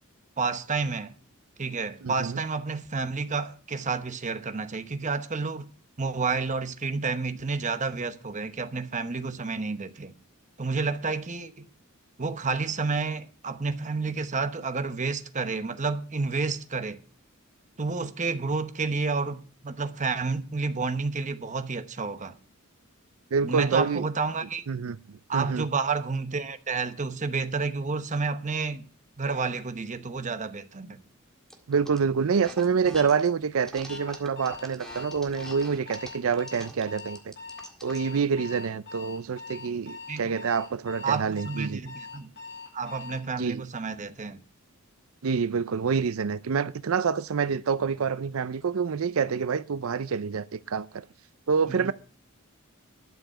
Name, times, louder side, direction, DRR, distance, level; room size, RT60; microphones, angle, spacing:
voice 1, 0.4-1.1 1.6-5.7 6.0-10.1 10.6-11.7 12.2-17.0 17.8-22.4 23.4-24.6 25.3-28.9 29.2-31.0 40.1-40.3 41.0-42.3 42.7-44.4 51.7-51.9, right 4 dB, 35° right, 1.0 m, -30 dB
voice 2, 2.0-2.4 23.3-24.1 24.7-25.7 31.7-37.3 37.8-41.8 43.2-43.6 45.2-51.1 51.5-51.9, right 6 dB, 70° right, 0.5 m, -27 dB
sound 1, 31.5-32.0 32.4-33.3 33.6-38.1, equal, ahead, 1.8 m, -44 dB
Alarm, 33.9-43.3, left 4 dB, 50° left, 5.2 m, -43 dB
12.0 x 7.0 x 7.7 m
head